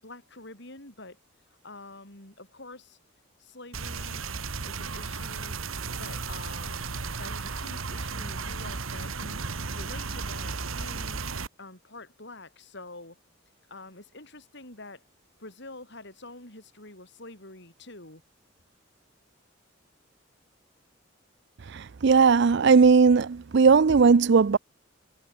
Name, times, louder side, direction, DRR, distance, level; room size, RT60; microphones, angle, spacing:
voice 1, 0.0-1.2 1.6-3.0 3.4-4.2 4.6-5.6 6.0-11.2 11.6-13.2 13.7-15.0 15.4-18.2, left 2 dB, 60° left, 7.5 m, -46 dB
sound 1, 3.7-11.5, right 4 dB, 85° right, 1.8 m, -34 dB
voice 2, 21.7-24.6, right 5 dB, 60° right, 0.5 m, -18 dB
head